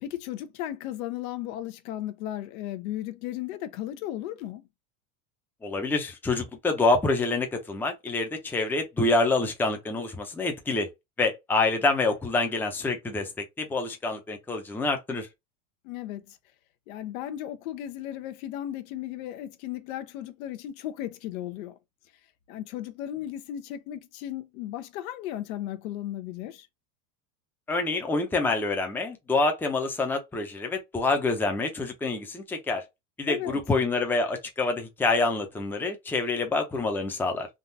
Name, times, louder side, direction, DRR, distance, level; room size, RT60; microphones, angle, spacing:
voice 1, 0.0-4.7 15.8-16.4 16.9-21.8 22.5-26.7 33.3-33.6, left 12 dB, 70° left, 0.8 m, -35 dB
voice 2, 5.6-10.9 11.2-15.3 27.7-32.8 33.2-37.5, left 3 dB, 5° left, 0.6 m, -27 dB
3.7 x 2.4 x 2.7 m
supercardioid pair, 135°, 43 cm